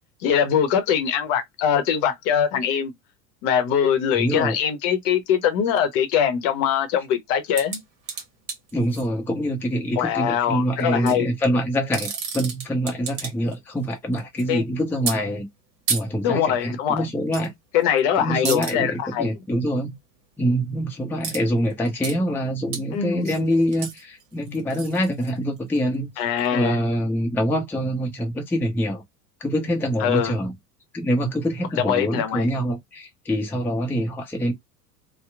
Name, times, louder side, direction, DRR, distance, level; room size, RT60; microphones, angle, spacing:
voice 1, 0.2-2.9 3.4-7.8 10.0-11.3 14.5-14.6 16.2-17.1 17.7-19.3 22.9-23.4 26.2-26.8 30.0-30.3 31.8-32.5, left 8 dB, 45° left, 0.7 m, -22 dB
voice 2, 4.2-4.6 8.7-15.5 15.9-17.5 18.2-19.9 20.4-26.1 26.5-29.0 29.4-30.5 30.9-34.5, equal, 5° left, 0.5 m, -25 dB
sound 1, 7.5-9.1 10.8-11.2 11.7-13.5 13.8-14.4 15.1-15.2 15.9-16.0 17.3-17.5 17.8-18.0 18.4-18.7 21.2-21.4 21.7-22.2 22.7-22.8 23.2-25.8 26.4-26.5, right 6 dB, 40° right, 1.1 m, -31 dB
2.8 x 2.0 x 2.3 m
hypercardioid pair, 85°, 50 cm